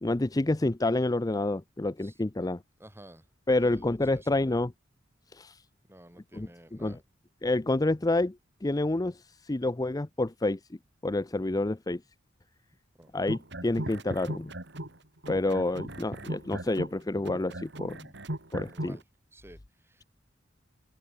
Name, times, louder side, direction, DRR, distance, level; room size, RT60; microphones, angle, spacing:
voice 1, 0.0-2.6 3.5-4.7 5.3-5.6 6.3-6.5 6.8-7.0 7.4-8.3 8.6-10.6 11.0-12.0 13.1-14.5 15.3-18.1 18.5-19.0, left 2 dB, 20° left, 0.6 m, -28 dB
voice 2, 2.8-3.2 3.6-4.6 5.9-7.0 13.0-13.1 18.7-19.0 19.3-20.0, right 1 dB, 15° right, 5.3 m, -52 dB
sound 1, 13.3-15.0 15.2-19.0, right 1 dB, 65° right, 4.3 m, -38 dB
open air
head